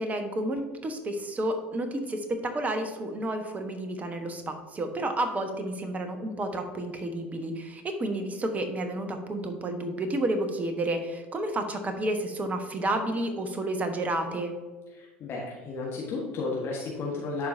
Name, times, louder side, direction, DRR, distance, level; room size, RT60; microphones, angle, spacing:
voice 1, 0.0-14.5, right 1 dB, 25° right, 6 dB, 1.2 m, -31 dB
voice 2, 14.9-17.5, left 3 dB, 40° left, -2 dB, 1.4 m, -33 dB
11.0 x 4.8 x 2.7 m, 1.3 s
figure-of-eight pair, 70°, 6 cm